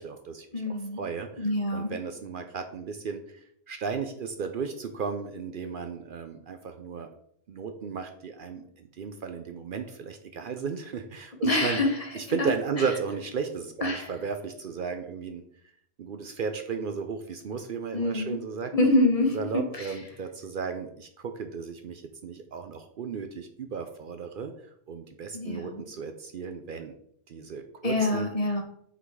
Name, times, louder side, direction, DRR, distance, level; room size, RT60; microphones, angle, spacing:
voice 1, 0.0-0.6 1.0-7.1 7.5-11.8 12.1-15.5 16.0-18.7 19.3-24.5 24.9-26.9 27.3-28.3, right 5 dB, 60° right, 7 dB, 0.7 m, -34 dB
voice 2, 0.5-1.0 1.4-1.9 11.4-11.9 12.4-12.5 13.8-14.1 17.9-18.4 18.7-19.9 25.3-25.8 27.8-28.6, left 2 dB, 35° left, 2 dB, 1.1 m, -26 dB
5.8 x 4.0 x 4.7 m, 0.69 s
omnidirectional pair, 1.1 m